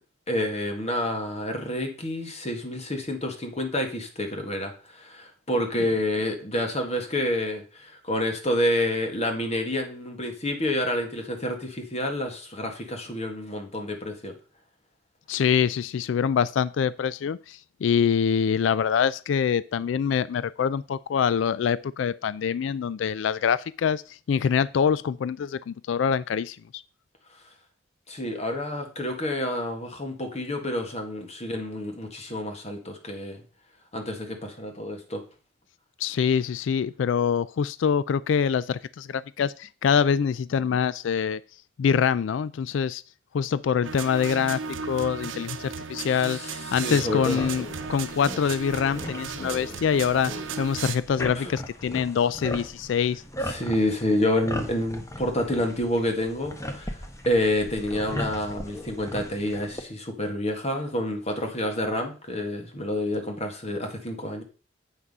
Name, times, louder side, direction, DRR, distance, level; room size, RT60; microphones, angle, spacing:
voice 1, 0.3-14.3 28.1-33.4 33.9-35.2 46.3-47.4 51.4-51.5 53.5-64.4, left 1 dB, 35° left, 4 dB, 1.8 m, -28 dB
voice 2, 15.3-26.8 36.0-41.4 41.8-43.0 43.3-50.3 50.6-53.2, left 7 dB, 70° left, 18 dB, 0.3 m, -25 dB
sound 1, 43.8-51.0, right 5 dB, 85° right, 0.8 m, -35 dB
sound 2, 47.3-59.8, left 1 dB, 15° left, 1.0 m, -38 dB
8.0 x 6.0 x 5.3 m, 0.36 s
head